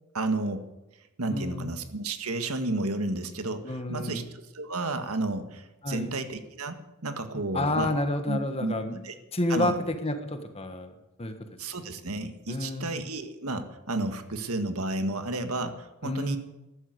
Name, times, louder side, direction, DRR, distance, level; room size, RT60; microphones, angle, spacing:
voice 1, 0.1-0.7 1.2-4.2 4.5-7.9 8.3-8.7 9.0-9.1 9.5-9.8 11.6-16.4, right 2 dB, 80° right, 8 dB, 1.7 m, -32 dB
voice 2, 1.3-1.7 3.6-4.2 5.8-6.1 7.5-9.0 9.3-10.9 11.2-11.3 12.5-12.9 16.0-16.4, left 1 dB, 25° left, 7 dB, 1.5 m, -29 dB
14.0 x 11.5 x 8.0 m, 0.99 s
head